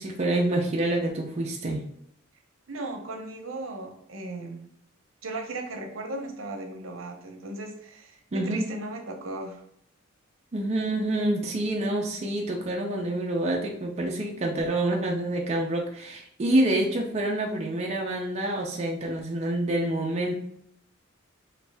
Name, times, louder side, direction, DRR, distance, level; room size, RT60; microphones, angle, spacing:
voice 1, 0.0-1.9 8.3-8.7 10.5-20.3, right 1 dB, 35° right, 0 dB, 0.4 m, -27 dB
voice 2, 2.7-4.7 5.2-9.6, right 2 dB, 70° right, 3 dB, 0.7 m, -37 dB
3.2 x 2.6 x 3.3 m, 0.69 s
head